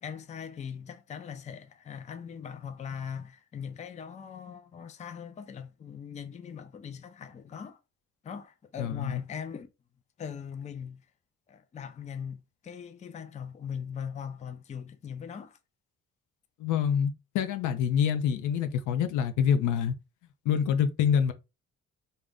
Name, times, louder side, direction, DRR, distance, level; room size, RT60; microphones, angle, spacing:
voice 1, 0.0-7.8 8.2-9.7 10.2-11.0 11.5-15.6, left 7 dB, 25° left, 0.4 m, -40 dB
voice 2, 8.8-9.2 16.6-19.9 20.5-21.3, left 8 dB, 85° left, 0.5 m, -26 dB
2.5 x 2.2 x 3.4 m
cardioid pair, 90°, 30 cm